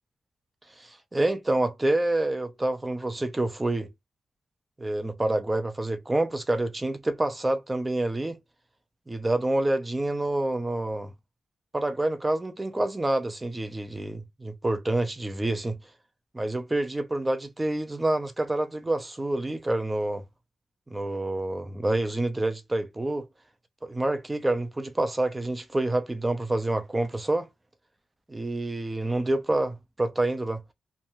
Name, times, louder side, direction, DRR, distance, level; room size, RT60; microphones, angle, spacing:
voice 1, 0.8-3.9 4.8-8.4 9.1-11.1 11.7-15.8 16.3-20.2 20.9-23.3 23.8-27.5 28.3-30.6, right 2 dB, 25° right, 0.7 m, -27 dB
3.1 x 2.1 x 2.6 m
supercardioid pair, 50°, 0 cm